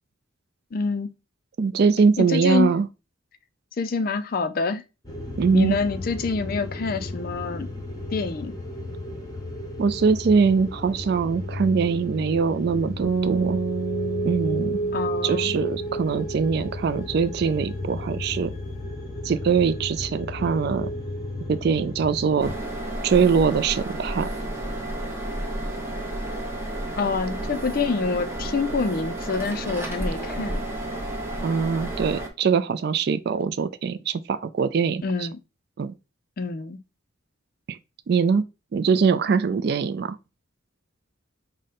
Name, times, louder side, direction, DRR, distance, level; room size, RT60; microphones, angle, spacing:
voice 1, 0.7-1.1 2.2-2.7 3.8-4.8 5.5-7.7 8.1-8.6 14.9-15.6 27.0-30.6 35.0-35.4 36.4-36.8, left 4 dB, 45° left, 0.4 m, -26 dB
voice 2, 1.6-2.9 5.4-5.8 9.8-13.6 14.2-14.8 15.2-18.5 19.2-20.9 21.5-22.5 23.0-24.3 31.4-35.3 35.8-35.9 37.7-37.8 38.1-38.4 38.7-40.2, right 5 dB, 50° right, 0.3 m, -22 dB
sound 1, 5.0-22.5, equal, 20° left, 0.9 m, -33 dB
sound 2, 13.0-16.2, right 4 dB, 85° right, 0.6 m, -30 dB
sound 3, 22.4-32.3, right 1 dB, 10° right, 0.7 m, -31 dB
4.9 x 2.1 x 4.1 m
head